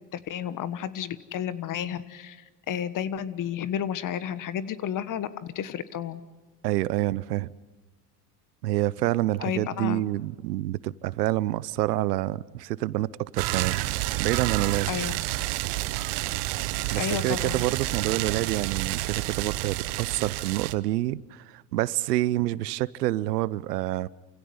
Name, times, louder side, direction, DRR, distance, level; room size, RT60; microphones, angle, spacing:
voice 1, 0.1-6.2 9.4-10.0 14.9-15.1 17.0-17.6, left 9 dB, 40° left, 1.4 m, -32 dB
voice 2, 6.6-7.5 8.6-14.9 16.9-24.1, right 16 dB, 85° right, 0.7 m, -27 dB
sound 1, 13.4-20.7, right 18 dB, 60° right, 1.1 m, -29 dB
29.0 x 16.5 x 9.5 m
hypercardioid pair, 90°, 46 cm